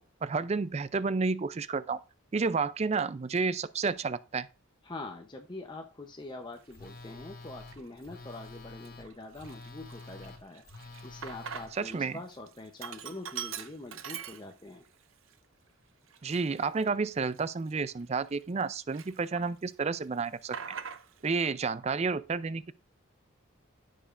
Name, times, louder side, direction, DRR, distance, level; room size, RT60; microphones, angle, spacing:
voice 1, 0.0-2.0 2.3-4.5 11.7-12.2 16.2-20.6 21.2-22.7, right 4 dB, 30° right, 0.4 m, -31 dB
voice 2, 4.8-10.6 11.0-14.8, left 2 dB, 20° left, 0.7 m, -44 dB
Telephone, 6.7-11.7, left 3 dB, 45° left, 1.1 m, -48 dB
Sink (filling or washing), 6.7-6.9 7.5-8.1 8.5-8.6 8.8-12.0 12.3-14.9 15.3-15.4 16.1-18.6 18.9-19.7 20.0-21.3, right 8 dB, 70° right, 0.6 m, -43 dB
14.5 x 5.1 x 2.5 m
head